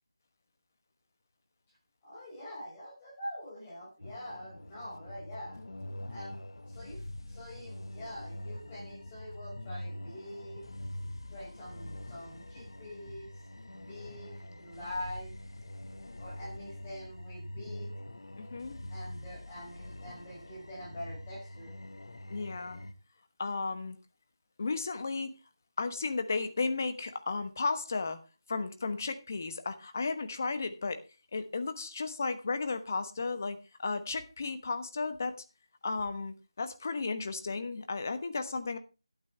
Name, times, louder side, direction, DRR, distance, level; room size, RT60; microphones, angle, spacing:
voice 1, 2.0-5.6 6.1-6.4 6.7-10.7 11.3-13.3 13.7-15.3 16.2-17.9 18.9-21.8, left 1 dB, 10° left, -6 dB, 5.4 m, -44 dB
sound 1, 4.0-22.9, left 1 dB, 60° left, 1.5 m, -44 dB
voice 2, 18.3-18.8 22.3-22.8 23.4-24.0 24.6-25.4 25.8-28.2 28.5-31.0 31.3-35.3 35.8-38.8, left 4 dB, 30° left, 10 dB, 1.2 m, -34 dB
12.0 x 11.5 x 3.4 m, 0.30 s
figure-of-eight pair, 175°, 3 cm